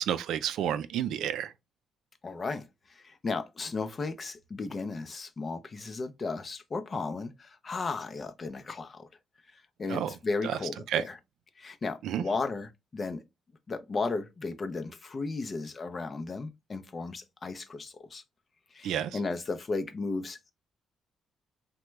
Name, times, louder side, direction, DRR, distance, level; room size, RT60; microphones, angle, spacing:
voice 1, 0.0-1.5 9.9-10.1 10.4-10.6 10.9-11.0 12.0-12.2 18.8-19.2, right 10 dB, 80° right, 0.3 m, -30 dB
voice 2, 2.2-9.1 9.5-11.2 11.6-13.2 13.7-18.2 18.7-20.5, left 3 dB, 35° left, 0.5 m, -35 dB
2.9 x 2.2 x 3.2 m
cardioid pair, 90°, 0 cm